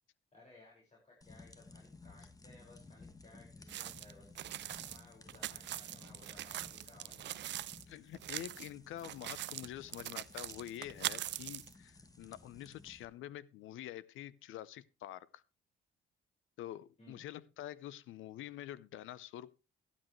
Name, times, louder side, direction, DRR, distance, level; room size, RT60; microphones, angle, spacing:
voice 1, 0.3-7.4 17.0-17.2, left 2 dB, 35° left, 5.7 m, -61 dB
sound 1, 1.2-13.0, left 3 dB, 20° left, 1.3 m, -57 dB
sound 2, 3.7-7.8 8.1-8.7 9.0-11.7, right 13 dB, 65° right, 0.5 m, -42 dB
voice 2, 7.9-15.4 16.6-19.5, left 12 dB, 85° left, 0.8 m, -47 dB
13.0 x 12.0 x 3.2 m
cardioid pair, 90°, 20 cm